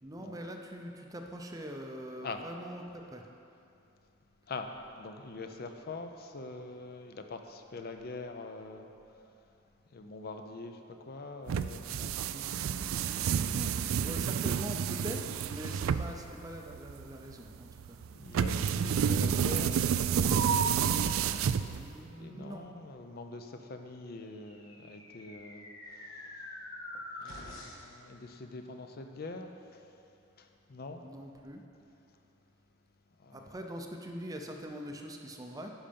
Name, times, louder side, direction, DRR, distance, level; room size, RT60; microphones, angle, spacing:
voice 1, 0.0-3.3 12.3-18.0 21.8-22.7 31.0-31.6 33.3-35.7, equal, 20° right, 3 dB, 0.6 m, -43 dB
voice 2, 5.0-8.9 9.9-12.1 18.1-21.0 22.2-26.4 26.9-29.8 30.4-31.0 33.2-33.5, left 3 dB, 50° left, 5 dB, 0.5 m, -44 dB
sound 1, 11.5-22.1, right 7 dB, 80° right, 0.3 m, -30 dB
sound 2, 24.3-27.9, left 1 dB, 75° left, 1.4 m, -46 dB
10.5 x 5.6 x 5.2 m, 2.7 s
head